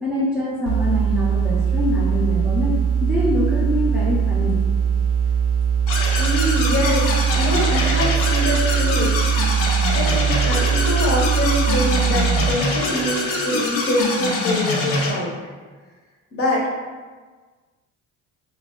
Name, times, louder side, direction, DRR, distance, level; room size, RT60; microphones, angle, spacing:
voice 1, 0.0-2.7 3.0-4.6, left 2 dB, ahead, -6 dB, 0.6 m, -24 dB
sound 1, 0.7-12.5, right 7 dB, 65° right, 0.4 m, -21 dB
sound 2, 5.9-15.1, left 2 dB, 85° left, 0.7 m, -24 dB
voice 2, 6.2-9.6 9.9-15.3 16.3-16.7, left 1 dB, 45° left, -4 dB, 0.8 m, -24 dB
2.2 x 2.2 x 3.6 m, 1.4 s
supercardioid pair, 80°, 32 cm